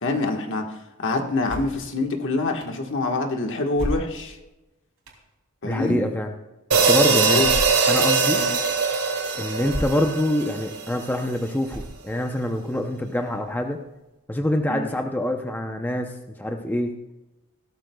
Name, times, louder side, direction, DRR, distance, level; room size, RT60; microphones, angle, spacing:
voice 1, 0.0-4.4 5.6-6.0 7.1-7.5 8.3-8.5 14.7-14.9, left 3 dB, 60° left, 3 dB, 1.4 m, -26 dB
sound 1, 1.5-1.9 2.6-2.7 3.8-4.4 5.1-5.2 7.4-7.9 8.5-8.6 9.6-10.1 10.6-10.7 11.7-12.2, equal, 65° right, 3.0 m, -32 dB
voice 2, 5.6-6.3 6.7-7.4 7.9-8.4 9.3-13.8 14.3-16.9, left 1 dB, 10° left, 4 dB, 0.6 m, -25 dB
sound 2, 6.7-11.1, right 5 dB, 80° right, 2.7 m, -21 dB
16.5 x 13.0 x 2.3 m, 1.0 s
head